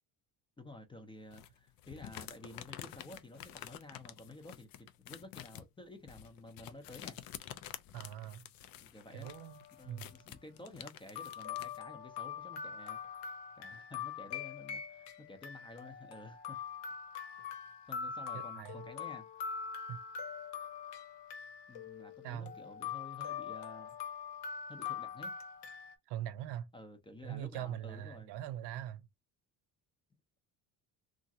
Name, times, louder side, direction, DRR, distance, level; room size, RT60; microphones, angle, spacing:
voice 1, 0.6-7.2 8.8-9.3 9.8-16.6 17.9-19.3 21.7-24.0 24.7-25.4 26.7-28.3, left 2 dB, 15° left, 0.5 m, -52 dB
sound 1, 1.3-11.8, left 11 dB, 60° left, 0.5 m, -49 dB
voice 2, 7.9-8.4 9.1-10.1 18.3-18.9 19.9-20.0 22.2-22.5 26.1-26.7 27.2-29.0, right 11 dB, 75° right, 0.5 m, -42 dB
sound 2, 9.2-9.7 10.7-10.8 11.1-25.9, left 7 dB, 80° left, 0.8 m, -43 dB
2.9 x 2.5 x 2.7 m
cardioid pair, 120°, 40 cm